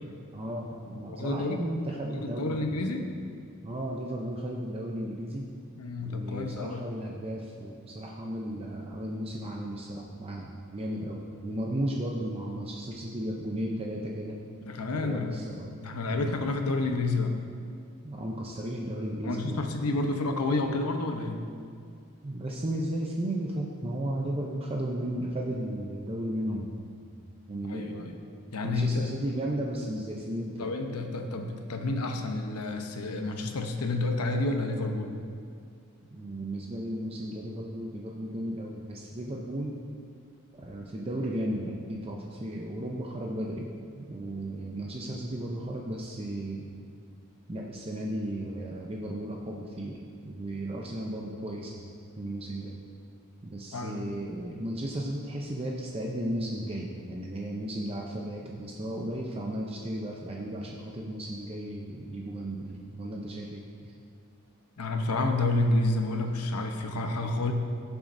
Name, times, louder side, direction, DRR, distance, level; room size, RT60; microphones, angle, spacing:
voice 1, 0.3-2.7 3.6-5.5 6.0-14.4 14.9-15.7 16.1-16.3 18.0-19.6 22.2-27.1 27.5-28.2 28.6-30.7 36.1-39.7 40.6-43.7 44.0-46.7 47.5-52.8 53.4-63.9, right 1 dB, 25° right, -1 dB, 0.6 m, -35 dB
voice 2, 1.1-1.6 2.1-3.1 5.8-6.8 14.6-15.4 15.8-17.3 19.2-21.4 27.7-28.2 28.5-29.1 30.6-35.2 53.7-54.1 64.8-67.5, left 2 dB, 85° left, 5 dB, 0.9 m, -29 dB
15.5 x 7.2 x 2.6 m, 2.2 s
head